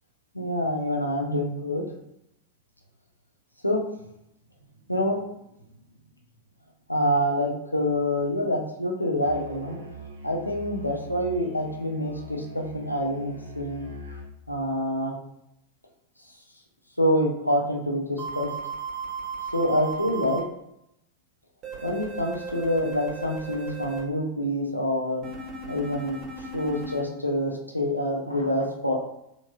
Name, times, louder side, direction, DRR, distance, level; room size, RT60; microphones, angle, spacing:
voice 1, 0.3-1.9 3.6-3.8 4.9-5.2 6.9-9.8 10.2-13.9 14.5-15.1 17.0-18.5 19.5-20.4 21.8-25.2 25.7-26.2 26.5-29.0, equal, 85° left, 0 dB, 0.5 m, -26 dB
Musical instrument, 9.2-14.4, equal, 80° right, 0.5 m, -42 dB
sound 1, 18.2-20.4 21.6-24.0 25.2-27.0, right 4 dB, 35° right, 0.7 m, -36 dB
2.9 x 2.5 x 2.2 m, 0.81 s
figure-of-eight pair, 90°, 0 cm